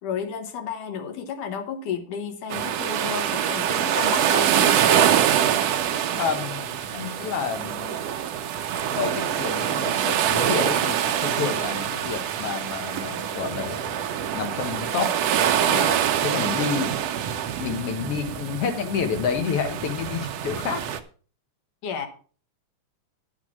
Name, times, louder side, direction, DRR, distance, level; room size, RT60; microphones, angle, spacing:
voice 1, 0.0-4.8 21.8-22.1, left 7 dB, 75° left, 6 dB, 2.8 m, -32 dB
sound 1, 2.5-21.0, right 9 dB, 70° right, 1.6 m, -25 dB
voice 2, 6.2-8.0 8.9-14.0 14.3-15.1 15.7-17.1 17.6-20.8, left 6 dB, 60° left, 8 dB, 1.8 m, -29 dB
10.5 x 6.3 x 6.1 m, 0.40 s
omnidirectional pair, 3.7 m